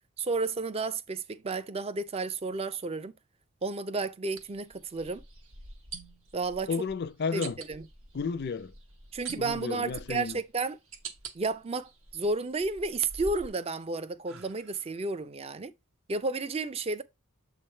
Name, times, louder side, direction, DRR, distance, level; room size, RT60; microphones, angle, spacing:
voice 1, 0.2-3.1 3.6-5.2 6.3-6.7 7.3-7.9 9.1-10.8 11.3-15.7 16.1-17.0, right 3 dB, 30° right, 0.4 m, -32 dB
sound 1, 4.4-4.5 5.9-6.3 7.4-7.7 9.2-9.8 10.4-11.4 11.9-12.6 13.0-15.0, right 8 dB, 65° right, 0.9 m, -44 dB
sound 2, 4.4-13.5, equal, 85° right, 1.4 m, -52 dB
voice 2, 6.7-7.6 8.1-8.7 9.4-10.4, left 5 dB, 50° left, 0.5 m, -32 dB
6.9 x 3.3 x 4.3 m
head